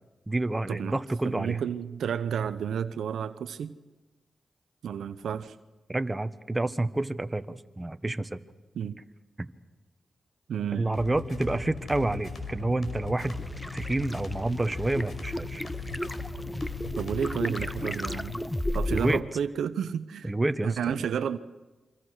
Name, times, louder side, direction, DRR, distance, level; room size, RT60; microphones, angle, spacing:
voice 1, 0.3-1.6 5.9-8.4 9.4-9.5 10.7-13.4 13.7-15.6 18.9-19.2 20.2-21.0, right 2 dB, 20° right, 1.4 m, -29 dB
voice 2, 1.2-3.7 4.8-5.6 8.7-9.0 10.5-11.0 16.9-18.4 18.7-20.3 20.6-21.4, right 8 dB, 85° right, 0.8 m, -31 dB
sound 1, 10.9-18.5, left 3 dB, 65° left, 5.7 m, -38 dB
sound 2, 13.2-19.2, left 1 dB, 10° left, 1.1 m, -34 dB
28.0 x 24.5 x 6.4 m
supercardioid pair, 45°, 0 cm